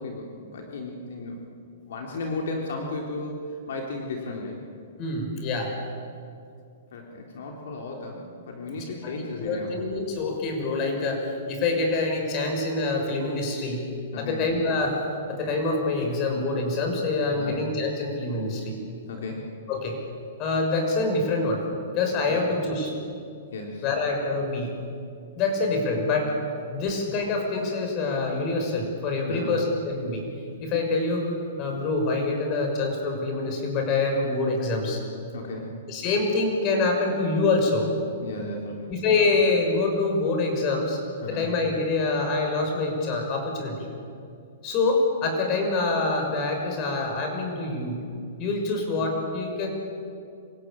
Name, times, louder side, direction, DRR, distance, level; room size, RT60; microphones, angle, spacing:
voice 1, 0.0-1.4 1.9-4.6 6.9-9.7 14.1-14.4 17.3-17.6 19.1-19.5 22.3-22.4 23.5-23.9 29.3-29.6 35.3-35.7 38.2-39.0 41.2-41.5, left 2 dB, 70° left, 0 dB, 3.5 m, -34 dB
voice 2, 5.0-5.8 8.7-9.1 9.4-13.9 14.2-15.0 15.3-18.7 19.7-20.0 20.4-21.6 21.9-22.9 23.8-24.7 25.4-26.3 26.7-30.2 30.6-35.0 35.9-37.9 38.9-41.0 41.3-43.9 44.6-48.0 48.4-49.7, left 3 dB, 35° left, 3 dB, 6.3 m, -26 dB
27.0 x 17.0 x 9.1 m, 2.4 s
hypercardioid pair, 140°, 0 cm